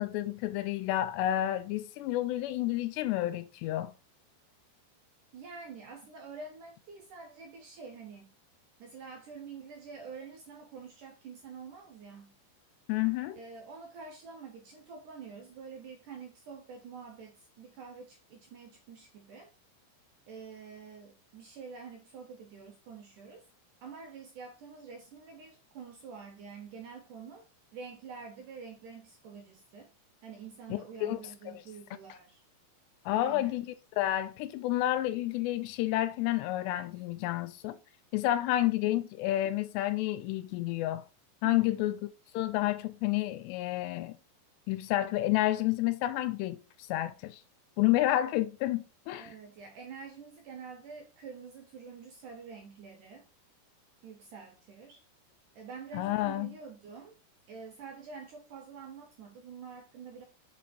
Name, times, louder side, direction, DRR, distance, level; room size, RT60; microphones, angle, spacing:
voice 1, 0.0-3.9 12.9-13.4 30.7-31.2 33.1-37.8 38.1-41.0 41.4-42.0 42.3-44.2 44.7-47.4 47.8-49.3 55.9-56.5, left 15 dB, 85° left, 2.7 m, -30 dB
voice 2, 5.3-8.3 8.8-12.4 13.4-19.5 20.3-23.4 23.8-27.4 27.7-29.9 30.2-32.4 33.1-33.6 41.4-41.9 49.2-53.2 54.0-55.0 55.6-57.2 57.5-60.2, right 5 dB, 80° right, 1.8 m, -47 dB
6.8 x 5.1 x 4.3 m
omnidirectional pair, 5.0 m